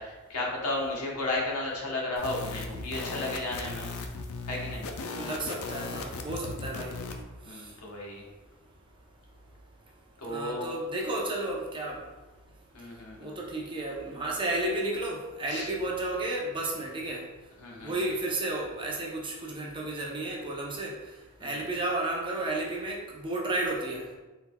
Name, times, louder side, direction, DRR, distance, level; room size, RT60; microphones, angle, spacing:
voice 1, 0.0-3.9 4.4-4.9 7.4-8.2 10.2-10.7 12.7-13.4 15.5-15.7 17.6-18.0 21.4-21.5, left 2 dB, 90° left, -3 dB, 1.1 m, -34 dB
sound 1, 2.2-7.2, left 3 dB, 70° left, 0.5 m, -37 dB
voice 2, 5.2-6.9 7.5-7.7 10.3-12.0 13.2-17.2 17.8-20.9 21.4-24.0, right 2 dB, 20° right, -2 dB, 0.7 m, -32 dB
4.1 x 3.9 x 2.3 m, 1.2 s
head